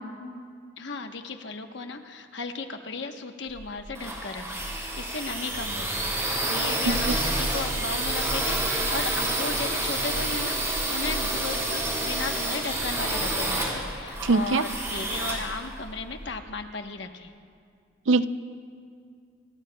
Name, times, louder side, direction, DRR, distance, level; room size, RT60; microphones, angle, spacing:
voice 1, 0.8-17.3, left 4 dB, 65° left, 5 dB, 1.1 m, -35 dB
sound 1, 3.5-16.3, right 1 dB, 15° right, 4.0 m, -29 dB
voice 2, 14.2-14.6 18.1-18.3, right 3 dB, 80° right, 12 dB, 0.5 m, -22 dB
28.5 x 22.0 x 2.3 m, 2.3 s
head